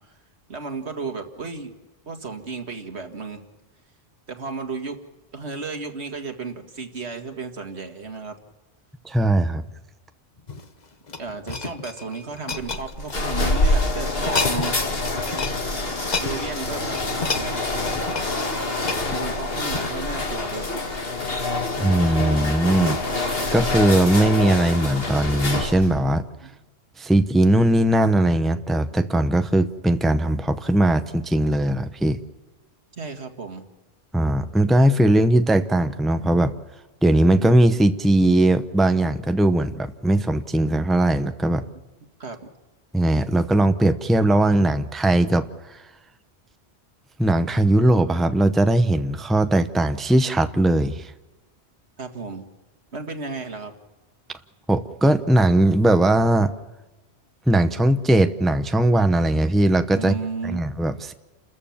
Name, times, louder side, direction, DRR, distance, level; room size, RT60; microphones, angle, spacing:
voice 1, 0.5-1.7 2.1-3.4 4.3-5.0 5.3-8.4 11.2-15.1 16.2-17.0 17.3-17.6 19.0-20.8 26.4-26.5 33.0-33.6 42.2-42.4 52.0-52.5 52.9-53.7 60.0-60.6, right 4 dB, 85° right, 6 dB, 2.2 m, -33 dB
voice 2, 9.0-9.6 21.8-26.2 27.0-32.2 34.1-36.5 37.0-41.6 42.9-45.8 47.2-51.1 54.7-56.5 57.5-60.1 60.4-61.1, right 1 dB, ahead, 9 dB, 0.7 m, -19 dB
sound 1, 10.4-13.6 14.1-14.8 15.0-15.6 15.9-20.1 20.7-20.9, left 4 dB, 40° left, 1.2 m, -31 dB
sound 2, 12.5-26.0, left 2 dB, 65° left, 2.3 m, -26 dB
29.5 x 14.0 x 7.2 m, 1.2 s
omnidirectional pair, 1.1 m